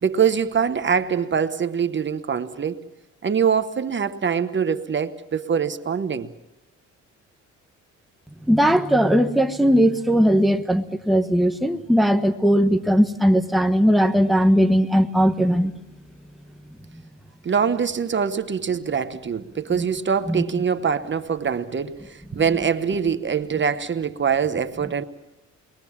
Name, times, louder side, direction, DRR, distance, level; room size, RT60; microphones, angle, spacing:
voice 1, 0.0-2.8 3.2-6.3 17.4-25.0, right 7 dB, 40° right, 1.2 m, -23 dB
voice 2, 8.5-15.7 19.7-19.8 20.3-20.4, equal, ahead, 1.3 m, -18 dB
29.5 x 21.5 x 7.4 m
cardioid pair, 90°, 30 cm